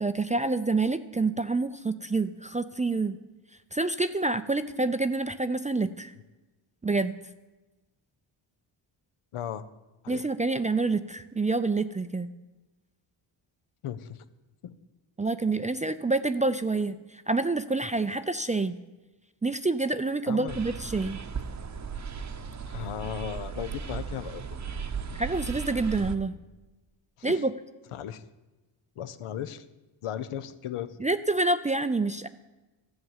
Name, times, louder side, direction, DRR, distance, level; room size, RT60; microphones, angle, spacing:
voice 1, 0.0-3.2 3.7-6.1 6.8-7.1 10.1-12.3 15.2-18.8 19.4-21.2 25.2-26.4 27.2-27.5 31.0-32.3, right 3 dB, 15° right, 11 dB, 0.3 m, -27 dB
voice 2, 9.3-9.7 10.0-10.3 13.8-14.2 14.6-14.7 20.3-20.6 22.7-24.4 27.2-27.4 27.9-28.2 29.0-29.6 30.0-31.0, left 10 dB, 85° left, 12 dB, 0.8 m, -36 dB
sound 1, 20.5-26.2, right 6 dB, 35° right, 0.8 m, -36 dB
13.0 x 8.0 x 7.3 m, 1.1 s
cardioid pair, 95°, 49 cm